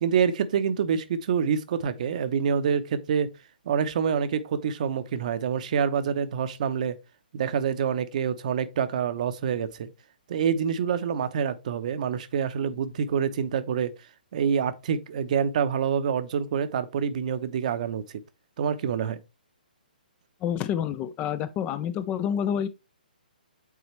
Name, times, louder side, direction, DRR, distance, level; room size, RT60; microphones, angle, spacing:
voice 1, 0.0-3.3 3.7-7.0 7.3-9.9 10.3-13.9 14.3-18.0 18.6-19.2, right 7 dB, 50° right, 0.8 m, -26 dB
voice 2, 20.4-22.7, left 9 dB, 25° left, 0.5 m, -28 dB
8.2 x 3.9 x 3.1 m
hypercardioid pair, 135°, 5 cm